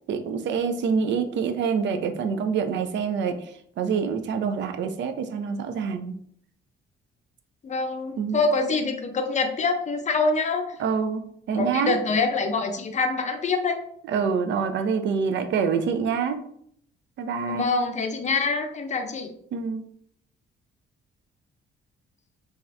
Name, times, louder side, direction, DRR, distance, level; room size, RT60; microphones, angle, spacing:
voice 1, 0.1-3.5 3.8-6.2 8.2-8.4 10.8-11.2 11.5-12.0 14.1-16.4 17.2-17.7 19.5-19.8, right 6 dB, 65° right, 7 dB, 0.4 m, -26 dB
voice 2, 7.6-10.8 11.5-13.8 17.5-19.3, left 3 dB, 35° left, 5 dB, 0.5 m, -25 dB
2.6 x 2.4 x 3.2 m, 0.67 s
cardioid pair, 90°, 20 cm